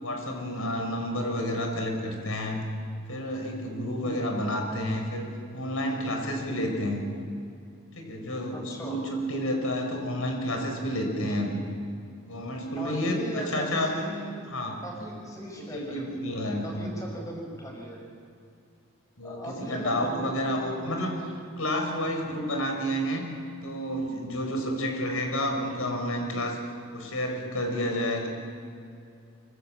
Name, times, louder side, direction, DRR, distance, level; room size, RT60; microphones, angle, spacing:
voice 1, 0.0-2.6 3.1-5.3 5.5-7.0 7.9-11.6 12.3-13.9 14.5-14.8 15.6-16.9 19.2-21.2 21.6-23.3 23.6-26.6 26.9-28.3, equal, 80° left, 3 dB, 4.9 m, -30 dB
voice 2, 8.5-9.0 11.2-11.4 12.8-14.3 14.8-16.1 16.4-18.0 19.2-21.2, equal, 15° left, 0 dB, 5.4 m, -38 dB
25.5 x 25.0 x 7.8 m, 2.5 s
head